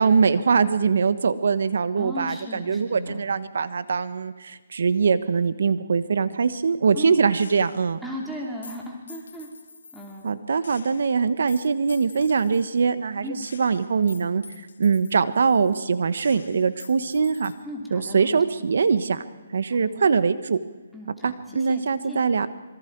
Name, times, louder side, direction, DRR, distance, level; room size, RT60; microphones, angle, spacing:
voice 1, 0.0-8.0 10.2-17.5 17.9-19.2 19.5-20.6 21.2-22.5, right 5 dB, 65° right, 13 dB, 1.3 m, -22 dB
voice 2, 2.0-3.2 6.9-7.2 8.0-9.5 9.9-10.4 13.2-13.5 17.6-18.4 19.7-20.1 20.9-21.8 22.1-22.2, equal, ahead, -3 dB, 3.0 m, -36 dB
Gunshot gunfire, 7.3-8.0 8.6-10.3 10.6-12.9 13.4-15.9 16.2-17.5, left 4 dB, 75° left, 2.9 m, -47 dB
26.0 x 24.0 x 4.8 m, 1.2 s
hypercardioid pair, 160°, 0 cm